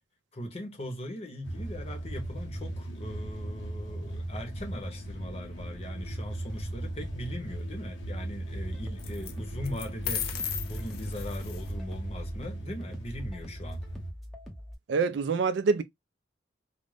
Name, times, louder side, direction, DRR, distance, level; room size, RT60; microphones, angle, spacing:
voice 1, 0.3-13.8, left 1 dB, 30° left, 0.8 m, -40 dB
sound 1, 1.4-14.1, right 1 dB, 75° left, 0.9 m, -38 dB
sound 2, 6.1-6.7 9.0-9.3 9.6-11.7, left 8 dB, 50° left, 0.4 m, -36 dB
sound 3, 8.5-14.8, equal, ahead, 0.5 m, -44 dB
voice 2, 14.9-15.8, right 4 dB, 65° right, 0.3 m, -25 dB
2.4 x 2.1 x 3.1 m
head